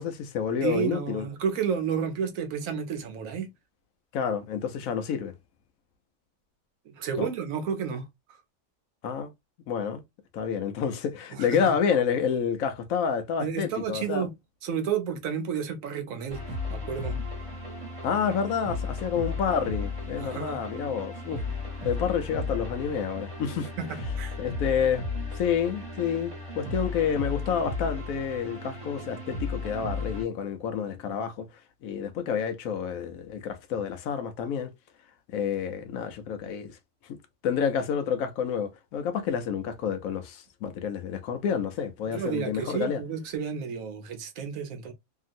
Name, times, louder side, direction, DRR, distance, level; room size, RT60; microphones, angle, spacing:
voice 1, 0.0-1.3 4.1-5.3 7.2-7.3 9.0-9.3 9.7-10.0 10.3-14.3 18.0-21.4 21.8-23.7 24.4-25.0 25.3-31.5 31.8-34.7 35.3-36.8 37.0-37.2 37.4-43.0, left 7 dB, 75° left, 1.0 m, -29 dB
voice 2, 0.6-3.5 6.9-8.1 11.3-11.7 13.4-14.3 14.6-17.2 20.2-20.6 23.8-24.4 42.1-44.9, right 7 dB, 75° right, 1.1 m, -31 dB
sound 1, 16.3-30.2, left 3 dB, 25° right, 1.2 m, -35 dB
2.9 x 2.7 x 2.5 m
omnidirectional pair, 1.5 m